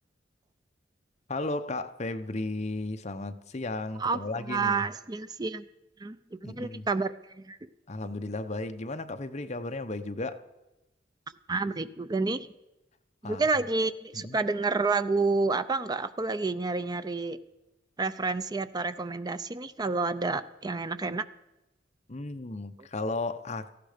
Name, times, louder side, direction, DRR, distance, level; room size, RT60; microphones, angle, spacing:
voice 1, 1.3-4.7 6.4-6.9 7.9-10.4 13.2-13.5 14.1-14.4 22.1-23.8, left 2 dB, 40° left, 0.9 m, -34 dB
voice 2, 4.0-5.6 6.0-6.2 6.4-7.1 7.4-7.6 11.5-12.5 13.2-17.4 18.0-21.3, right 3 dB, 20° right, 0.5 m, -29 dB
18.0 x 15.0 x 5.1 m
head